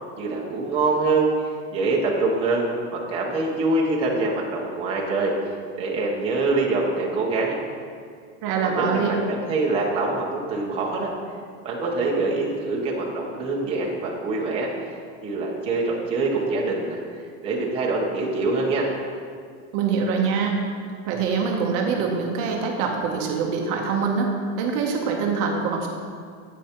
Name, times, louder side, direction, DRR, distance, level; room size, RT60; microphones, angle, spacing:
voice 1, 0.2-5.3 5.8-7.6 8.6-11.1 11.6-17.0 17.4-18.9, right 3 dB, 15° right, -3 dB, 0.8 m, -25 dB
voice 2, 8.4-9.1 19.7-20.6 21.1-24.3 24.6-25.9, right 5 dB, 40° right, 1 dB, 0.8 m, -24 dB
9.7 x 8.4 x 2.9 m, 2.1 s
supercardioid pair, 175°, 35 cm